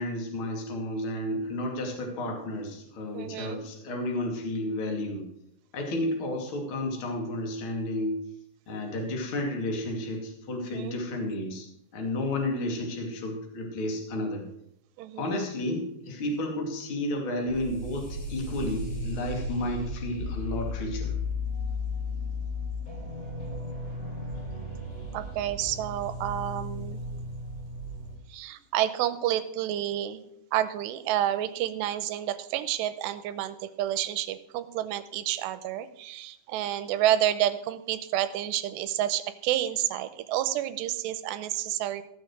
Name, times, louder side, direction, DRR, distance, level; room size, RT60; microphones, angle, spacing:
voice 1, 0.0-5.3 5.7-8.2 8.7-11.7 11.9-14.4 15.2-21.1, left 1 dB, 35° left, 1 dB, 2.5 m, -32 dB
voice 2, 3.1-3.6 10.7-11.0 15.0-15.4 25.1-27.0 28.3-30.2 30.5-42.0, right 12 dB, 85° right, 12 dB, 2.8 m, -29 dB
sound 1, 17.5-28.2, left 2 dB, 60° left, 5.8 m, -35 dB
15.0 x 6.5 x 6.3 m, 0.78 s
omnidirectional pair, 5.0 m